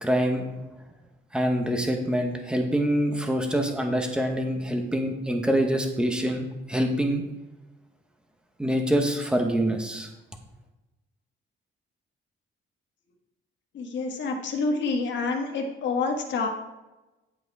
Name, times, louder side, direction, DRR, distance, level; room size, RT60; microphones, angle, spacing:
voice 1, 0.0-0.5 1.3-7.2 8.6-10.1, equal, 5° right, 3 dB, 1.0 m, -25 dB
voice 2, 13.7-16.5, left 3 dB, 60° left, 2 dB, 1.5 m, -28 dB
10.0 x 6.0 x 4.7 m, 1.1 s
cardioid pair, 175°, 21 cm